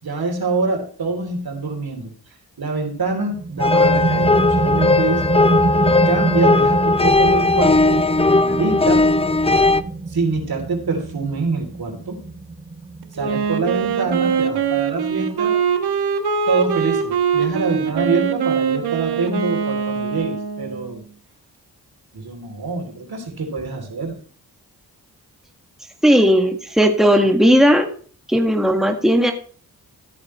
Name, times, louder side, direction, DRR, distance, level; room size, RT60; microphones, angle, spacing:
voice 1, 0.0-2.1 2.6-5.2 5.8-9.0 10.1-12.2 13.2-15.5 16.5-21.0 22.1-24.1, right 4 dB, 70° right, 2 dB, 3.3 m, -25 dB
sound 1, 3.3-14.6, right 3 dB, 20° right, 3.4 m, -25 dB
sound 2, 3.6-9.8, left 3 dB, 15° left, 0.5 m, -17 dB
Wind instrument woodwind instrument, 13.2-20.9, right 7 dB, 90° right, 1.1 m, -22 dB
voice 2, 26.0-27.9 28.3-29.3, equal, ahead, 4 dB, 1.7 m, -15 dB
14.0 x 8.7 x 3.2 m, 0.44 s
cardioid pair, 45°, 38 cm